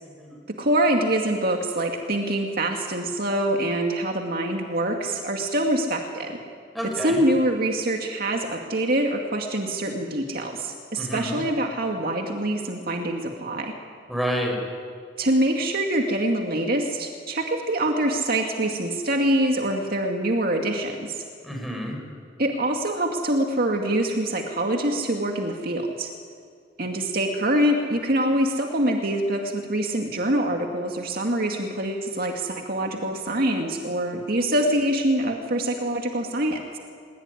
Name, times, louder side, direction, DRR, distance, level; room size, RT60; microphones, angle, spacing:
voice 1, 0.0-0.4 6.7-7.2 11.0-11.4 14.1-14.6 21.4-22.0, equal, ahead, 1 dB, 6.2 m, -29 dB
voice 2, 0.6-6.4 6.8-13.7 15.2-21.2 22.4-26.1 26.8-36.8, right 1 dB, 55° right, 2 dB, 2.3 m, -25 dB
22.5 x 21.5 x 9.9 m, 2.2 s
head